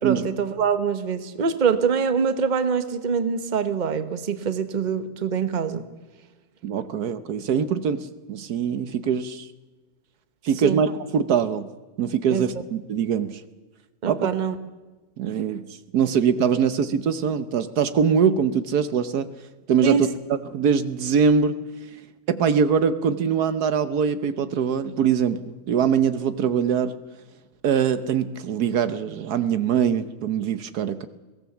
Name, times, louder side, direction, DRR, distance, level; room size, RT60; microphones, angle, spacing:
voice 1, 0.0-5.9 10.6-10.8 12.3-12.5 14.0-14.6 19.8-20.0, right 6 dB, 30° right, 10 dB, 1.1 m, -24 dB
voice 2, 6.6-9.5 10.4-11.7 12.0-13.4 14.1-14.2 15.2-15.7 15.9-19.3 19.7-21.6 22.3-26.9 27.6-31.1, right 7 dB, 70° right, 12 dB, 1.4 m, -23 dB
22.5 x 17.5 x 7.1 m, 1.2 s
omnidirectional pair, 1.8 m